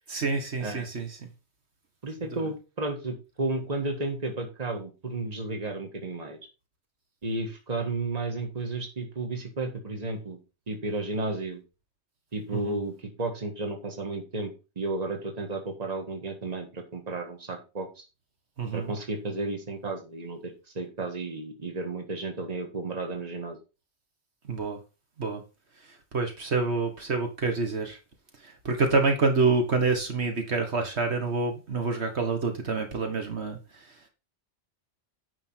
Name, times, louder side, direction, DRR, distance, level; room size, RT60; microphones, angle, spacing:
voice 1, 0.1-1.3 2.3-2.5 12.5-12.8 18.6-18.9 24.4-24.8 25.2-25.4 25.8-28.0 28.4-34.0, right 4 dB, 65° right, 1.8 m, -27 dB
voice 2, 2.0-6.4 7.2-10.4 10.7-11.6 12.3-18.0 18.7-23.6, right 2 dB, 35° right, 1.8 m, -33 dB
9.6 x 5.3 x 4.6 m
omnidirectional pair, 1.2 m